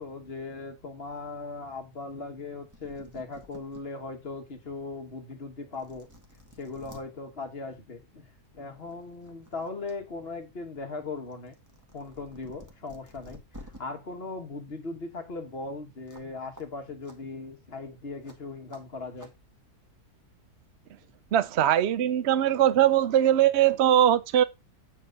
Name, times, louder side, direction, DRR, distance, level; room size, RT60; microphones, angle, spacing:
voice 1, 0.0-6.1 6.6-8.3 8.5-11.5 11.9-13.4 13.8-19.3, left 3 dB, 40° left, 1.7 m, -38 dB
sound 1, 2.4-2.5 2.7-3.8 4.4-4.5 5.3-5.4 5.7-7.0 8.3-8.5 8.9-10.0 10.3-13.8 16.1-16.3 16.6-16.7 17.0-17.2 18.2-18.4 18.7-18.8 19.2-19.3, equal, 10° right, 1.6 m, -51 dB
voice 2, 21.3-24.4, right 11 dB, 65° right, 0.7 m, -21 dB
9.0 x 4.3 x 5.1 m
omnidirectional pair, 1.6 m